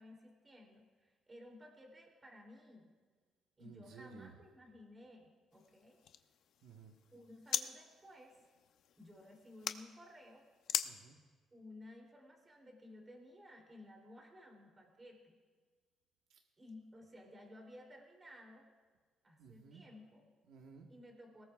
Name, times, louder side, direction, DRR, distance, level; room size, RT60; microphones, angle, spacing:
voice 1, 0.0-2.9 3.6-6.0 7.1-8.3 9.0-10.4 11.5-15.4 16.6-18.6 19.2-20.3 20.9-21.4, left 1 dB, 20° right, 0 dB, 3.1 m, -56 dB
voice 2, 3.6-4.4 6.6-6.9 10.8-11.2 16.3-16.4 19.4-19.9 20.5-20.9, right 6 dB, 80° right, 2 dB, 1.3 m, -56 dB
sound 1, 5.5-7.7 8.0-9.8 10.6-10.9, left 9 dB, 65° left, 0.6 m, -42 dB
21.5 x 19.0 x 2.4 m, 1.5 s
cardioid pair, 135°, 0 cm